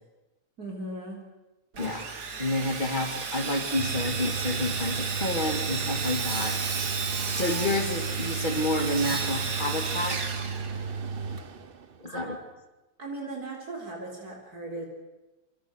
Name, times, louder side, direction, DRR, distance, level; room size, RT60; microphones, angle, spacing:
voice 1, 0.6-1.2 12.0-12.2 13.0-14.9, right 2 dB, 75° right, 1 dB, 4.7 m, -37 dB
Sawing, 1.7-11.2, right 5 dB, 90° right, 2.4 m, -33 dB
voice 2, 1.8-2.1 2.4-6.6 7.3-10.2 12.0-12.3, left 1 dB, 30° left, 3 dB, 2.7 m, -29 dB
Mechanical fan, 3.8-12.2, right 5 dB, 40° right, 1.1 m, -34 dB
27.0 x 24.0 x 6.5 m, 1.1 s
omnidirectional pair, 1.7 m